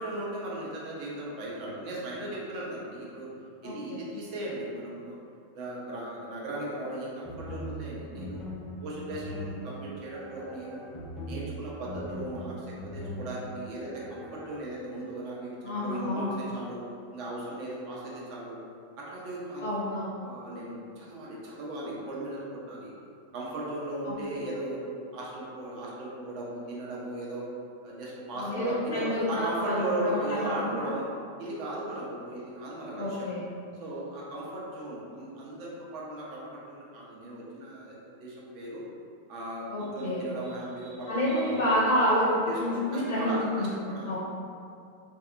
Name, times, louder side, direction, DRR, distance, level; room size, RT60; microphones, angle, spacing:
voice 1, 0.0-3.3 3.6-5.2 5.5-8.4 8.8-10.8 11.3-16.8 17.1-18.6 19.0-19.8 20.2-22.9 23.3-24.8 25.1-27.5 27.8-31.1 31.4-33.3 33.8-38.8 39.3-41.6 42.5-44.2, right 1 dB, 45° right, -5 dB, 0.7 m, -37 dB
voice 2, 3.6-4.0 15.6-16.3 19.6-20.1 24.1-24.2 28.3-30.9 33.0-33.4 39.7-40.2 41.1-42.3 42.6-43.7 44.0-44.2, left 1 dB, 60° left, -8 dB, 0.6 m, -29 dB
sound 1, 7.2-14.6, equal, 10° left, 0.4 m, -40 dB
2.6 x 2.3 x 2.5 m, 2.4 s
figure-of-eight pair, 90°, 0 cm